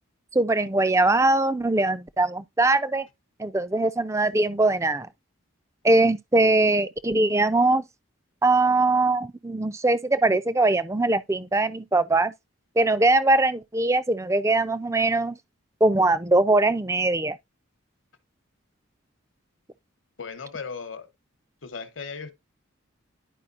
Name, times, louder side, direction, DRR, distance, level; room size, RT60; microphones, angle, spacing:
voice 1, 0.3-3.0 3.4-5.1 5.8-7.8 8.4-12.3 12.8-15.4 15.8-17.3, right 2 dB, 15° right, 0.4 m, -21 dB
voice 2, 20.2-21.1 21.6-22.3, left 5 dB, 65° left, 1.1 m, -36 dB
11.0 x 5.0 x 2.5 m
head